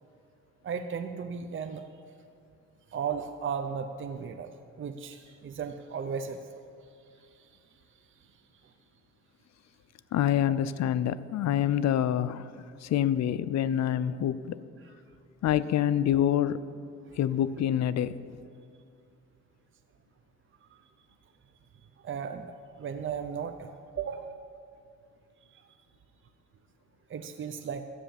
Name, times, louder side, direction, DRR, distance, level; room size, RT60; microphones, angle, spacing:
voice 1, 0.6-1.9 2.9-6.4 7.2-7.8 8.6-8.7 17.1-17.2 20.6-20.8 22.0-23.7 24.0-24.4 25.5-25.7 27.1-27.8, right 6 dB, 40° right, 7 dB, 0.7 m, -36 dB
voice 2, 10.1-14.6 15.4-16.6 17.2-18.2, left 10 dB, 60° left, 15 dB, 0.5 m, -26 dB
12.5 x 8.9 x 7.1 m, 2.3 s
cardioid pair, 90°, 30 cm